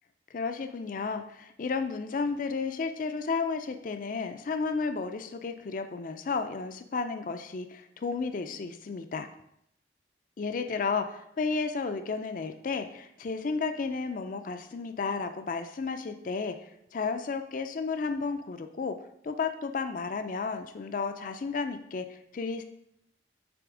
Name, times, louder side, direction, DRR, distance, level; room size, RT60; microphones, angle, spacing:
voice 1, 0.3-9.3 10.4-19.0 19.2-22.6, left 4 dB, 50° left, 8 dB, 0.4 m, -32 dB
7.0 x 3.3 x 4.9 m, 0.75 s
head